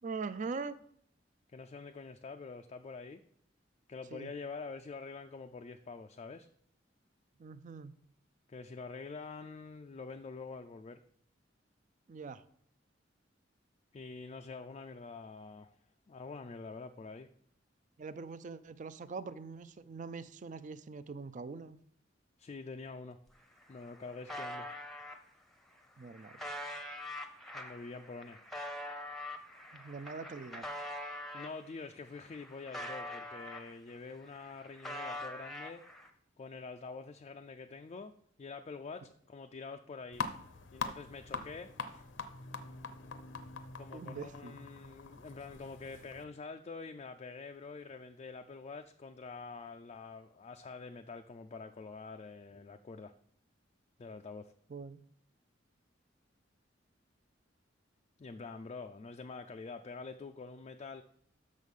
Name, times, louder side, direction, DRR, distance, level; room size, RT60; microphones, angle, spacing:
voice 1, 0.0-0.8 4.1-4.3 7.4-8.0 12.1-12.5 18.0-21.8 26.0-26.4 29.7-30.7 43.9-44.6 54.7-55.0, right 4 dB, 40° right, 15 dB, 0.4 m, -43 dB
voice 2, 1.5-3.2 3.9-6.5 8.5-11.0 13.9-15.7 16.1-17.3 22.4-23.2 23.7-24.7 27.5-28.4 31.3-35.8 36.4-38.1 38.4-40.2 40.7-42.1 43.8-53.1 54.0-54.5 58.2-61.0, left 4 dB, 35° left, 6 dB, 0.3 m, -46 dB
sound 1, 23.3-23.4 23.6-25.2 25.8-31.6 32.0-34.0 34.3-36.1, left 1 dB, ahead, 0.7 m, -44 dB
sound 2, 40.1-46.2, left 4 dB, 85° left, 0.7 m, -43 dB
6.5 x 6.4 x 5.3 m, 0.65 s
head